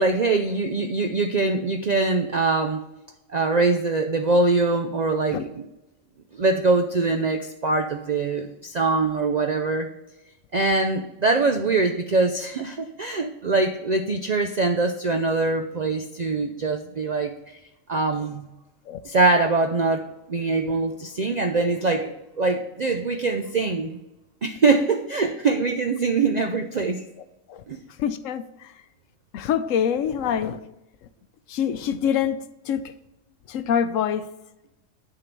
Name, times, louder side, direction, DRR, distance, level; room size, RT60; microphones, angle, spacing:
voice 1, 0.0-2.9 3.3-5.6 6.3-9.9 10.5-17.6 17.9-18.5 19.0-24.0 24.4-27.0 27.7-27.8, right 3 dB, 65° right, 5 dB, 0.4 m, -23 dB
voice 2, 28.0-28.7 29.3-30.6 31.5-32.9 33.5-34.3, left 8 dB, 75° left, 11 dB, 0.9 m, -25 dB
10.0 x 3.8 x 5.9 m, 0.94 s
omnidirectional pair, 1.4 m